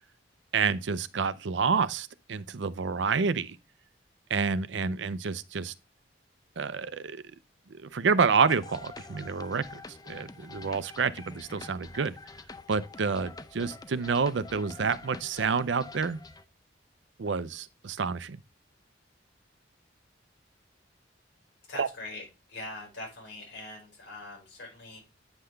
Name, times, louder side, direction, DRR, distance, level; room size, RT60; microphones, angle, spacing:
voice 1, 0.5-3.6 4.3-5.7 6.6-7.2 7.7-12.2 12.7-16.2 17.2-18.4 21.8-21.9, right 5 dB, 75° right, 0.6 m, -28 dB
sound 1, 8.5-16.4, left 3 dB, 20° left, 0.5 m, -46 dB
voice 2, 21.7-25.1, left 2 dB, 70° left, 5.2 m, -42 dB
9.0 x 5.7 x 3.3 m
head